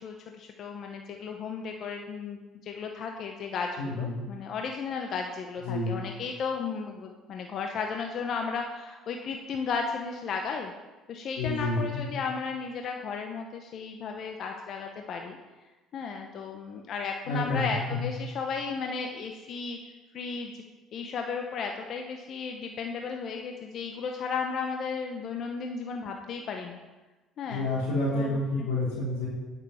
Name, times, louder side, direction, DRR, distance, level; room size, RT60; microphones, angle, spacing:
voice 1, 0.0-10.7 11.1-15.4 15.9-19.8 20.1-20.6 20.9-26.8 27.4-27.7 28.1-28.7, left 5 dB, 55° left, 3 dB, 1.0 m, -34 dB
voice 2, 3.8-4.2 5.6-5.9 11.4-12.1 17.2-18.1 27.5-29.3, left 2 dB, 85° left, -10 dB, 3.3 m, -29 dB
8.9 x 6.6 x 6.4 m, 1.2 s
supercardioid pair, 90°, 0 cm